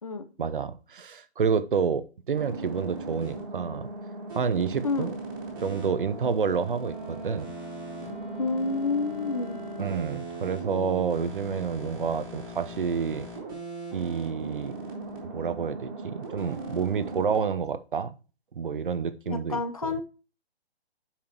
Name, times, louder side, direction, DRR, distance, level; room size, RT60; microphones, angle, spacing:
voice 1, 0.4-3.9 4.3-5.2 5.6-7.5 9.8-13.3 13.9-14.7 15.3-18.2 18.5-19.9, right 6 dB, 55° right, 0.7 m, -29 dB
sound 1, 2.3-17.4, right 2 dB, 20° right, 2.0 m, -38 dB
Wind instrument woodwind instrument, 6.7-10.2, left 1 dB, 10° left, 0.9 m, -46 dB
voice 2, 8.4-9.6 19.3-20.0, left 4 dB, 35° left, 0.7 m, -29 dB
8.9 x 5.7 x 2.9 m
hypercardioid pair, 180°, 32 cm